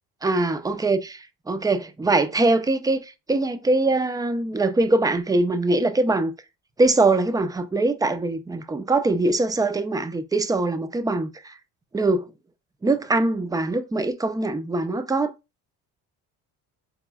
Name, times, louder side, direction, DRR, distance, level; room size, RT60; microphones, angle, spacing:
voice 1, 0.2-6.3 6.8-11.6 11.9-12.3 12.8-15.3, right 2 dB, 10° right, 0.3 m, -22 dB
3.8 x 3.0 x 2.3 m
supercardioid pair, 70°, 44 cm